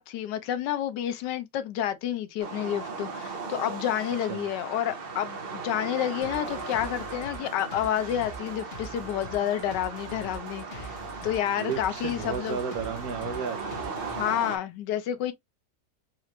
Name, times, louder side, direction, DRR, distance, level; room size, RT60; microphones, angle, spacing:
voice 1, 0.0-11.0 11.2-12.6 14.2-15.3, left 11 dB, 80° left, 1.3 m, -29 dB
sound 1, 2.4-14.6, right 4 dB, 45° right, 0.8 m, -38 dB
sound 2, 6.2-14.2, left 1 dB, 50° left, 0.7 m, -44 dB
voice 2, 11.6-13.8, right 6 dB, 65° right, 1.1 m, -33 dB
4.2 x 2.4 x 2.8 m
omnidirectional pair, 1.9 m